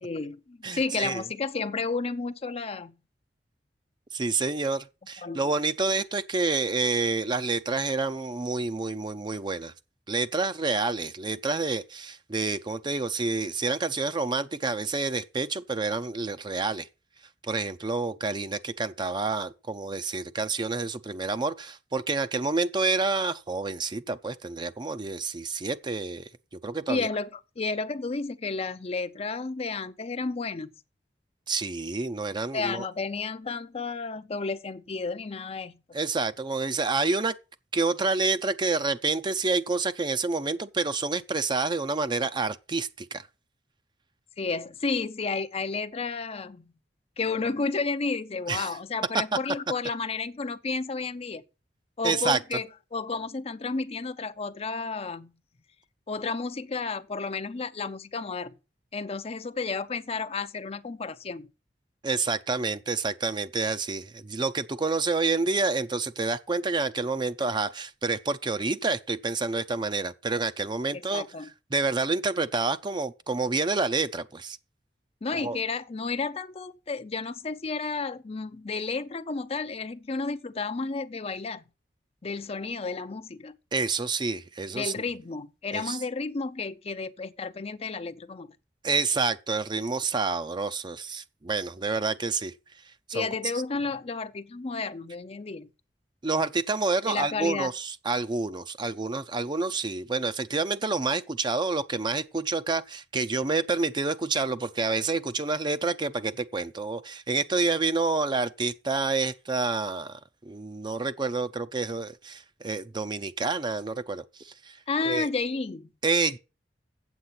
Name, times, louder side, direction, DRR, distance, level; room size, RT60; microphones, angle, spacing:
voice 1, 0.0-2.9 5.2-5.4 26.9-30.7 32.5-35.7 44.4-46.7 47.2-51.4 52.0-55.3 56.1-58.5 58.9-61.5 71.1-71.5 75.2-81.6 82.2-83.5 84.7-88.5 93.1-95.7 97.0-97.7 114.9-115.9, left 4 dB, 35° left, 0.5 m, -32 dB
voice 2, 0.6-1.2 4.1-9.7 10.1-16.9 17.5-26.3 26.6-27.1 31.5-32.9 35.9-37.4 37.7-43.3 48.5-48.7 49.1-49.2 52.0-52.6 62.0-74.6 75.3-75.6 83.7-84.9 85.7-86.0 88.8-92.5 93.1-93.3 96.2-114.8 115.0-115.3 116.0-116.4, right 3 dB, 25° right, 0.6 m, -28 dB
8.0 x 7.8 x 5.8 m
head